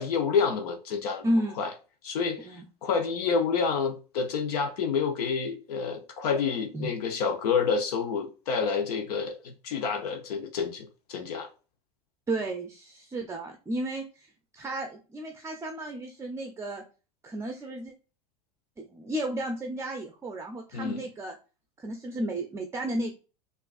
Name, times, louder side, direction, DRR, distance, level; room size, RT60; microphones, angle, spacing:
voice 1, 0.0-1.3 1.6-1.7 2.0-11.5 20.7-21.0, left 5 dB, 80° left, 0.7 m, -28 dB
voice 2, 1.2-1.6 2.4-2.6 6.7-6.9 12.3-14.3 14.5-16.8 17.2-17.9 18.8-21.3 21.8-23.2, right 1 dB, 15° right, 0.5 m, -33 dB
4.5 x 2.5 x 2.4 m
hypercardioid pair, 110°, 20 cm